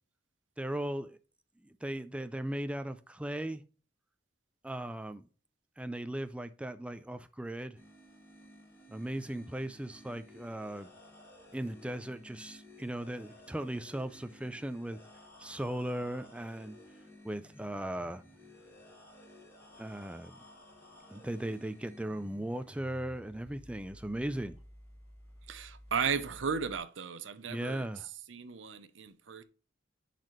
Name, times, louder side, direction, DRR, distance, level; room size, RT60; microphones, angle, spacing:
voice 1, 0.6-1.2 1.8-3.6 4.6-5.2 5.8-7.8 8.9-10.9 11.5-15.0 15.4-16.8 17.2-18.2 19.8-20.4 21.1-24.6 27.5-28.1, right 1 dB, 5° right, 0.4 m, -37 dB
sound 1, 7.8-26.8, left 1 dB, 15° left, 3.5 m, -55 dB
voice 2, 25.5-27.9 28.3-29.4, right 6 dB, 80° right, 0.7 m, -35 dB
10.5 x 4.1 x 3.1 m
head